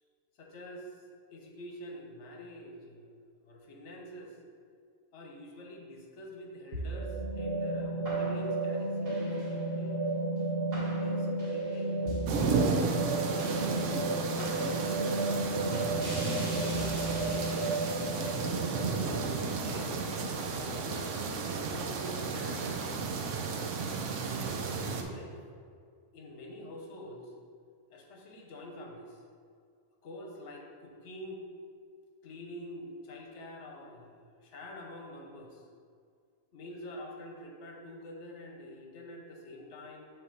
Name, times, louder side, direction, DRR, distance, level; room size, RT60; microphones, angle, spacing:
voice 1, 0.4-1.0 1.3-3.1 3.4-4.4 5.1-10.0 11.0-12.1 12.7-14.3 14.6-15.3 15.8-17.5 19.0-20.1 20.5-21.4 21.6-23.4 24.2-25.4 26.1-27.3 27.9-29.2 30.0-31.5 32.2-35.6 36.5-40.1, left 1 dB, 75° left, 1 dB, 1.1 m, -47 dB
sound 1, 6.7-21.2, right 2 dB, 55° right, 1.4 m, -33 dB
sound 2, 12.3-25.0, right 4 dB, 85° right, 1.0 m, -33 dB
7.0 x 2.9 x 5.2 m, 2.2 s
omnidirectional pair, 1.2 m